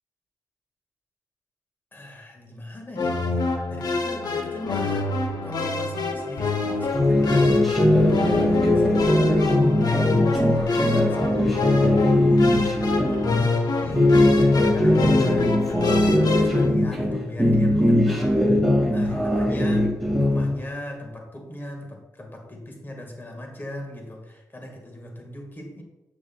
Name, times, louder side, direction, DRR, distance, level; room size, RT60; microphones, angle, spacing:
voice 1, 1.9-5.1 5.4-7.7 8.0-14.1 14.5-18.5 18.9-19.9 20.2-25.8, left 1 dB, 30° left, 2 dB, 1.7 m, -39 dB
sound 1, 3.0-16.7, left 3 dB, 70° left, 0.9 m, -27 dB
sound 2, 6.9-13.4 13.8-17.1 17.4-20.5, left 1 dB, ahead, 2.0 m, -20 dB
7.7 x 6.4 x 2.3 m, 1.1 s
cardioid pair, 75°, 7 cm